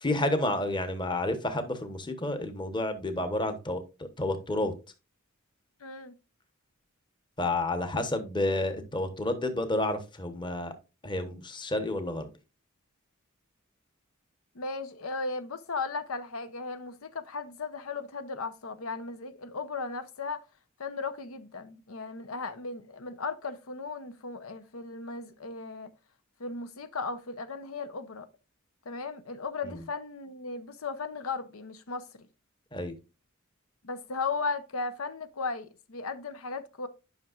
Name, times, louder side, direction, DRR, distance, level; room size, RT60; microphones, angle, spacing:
voice 1, 0.0-4.7 7.4-10.7 11.0-12.3 29.7-29.8 32.7-32.9, left 2 dB, 20° left, 1.0 m, -30 dB
voice 2, 5.8-6.1 14.5-20.4 20.8-25.9 26.4-28.3 28.9-32.1 33.8-36.9, left 4 dB, 85° left, 0.8 m, -36 dB
10.5 x 5.8 x 2.4 m
head